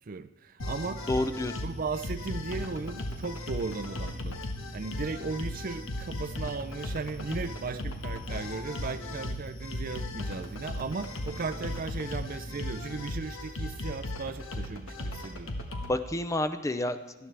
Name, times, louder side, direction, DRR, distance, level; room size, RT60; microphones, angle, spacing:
voice 1, 0.1-1.1 1.6-4.4 4.7-15.5, right 4 dB, 45° right, 0.5 m, -36 dB
sound 1, 0.6-15.9, left 1 dB, 80° left, 1.4 m, -36 dB
voice 2, 1.1-1.6 15.8-17.3, left 1 dB, 15° left, 0.5 m, -30 dB
18.0 x 12.5 x 3.4 m
head